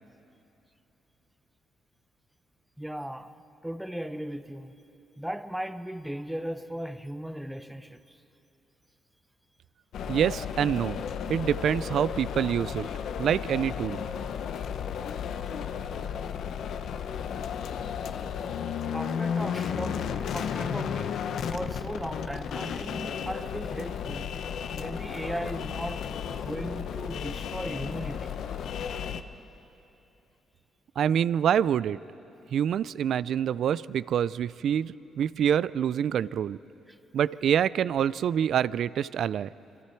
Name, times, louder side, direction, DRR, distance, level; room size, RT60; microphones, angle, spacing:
voice 1, 2.8-3.3 3.6-4.7 5.2-8.2 18.9-24.3 24.7-28.4 36.9-37.0, equal, 5° right, 0.9 m, -37 dB
sound 1, 9.9-29.2, left 7 dB, 70° left, 0.8 m, -33 dB
voice 2, 10.1-11.0 11.3-12.9 13.2-14.0 31.0-32.0 32.5-36.6 37.1-39.5, right 9 dB, 65° right, 0.4 m, -26 dB
26.5 x 24.0 x 4.5 m
cardioid pair, 90°, 0 cm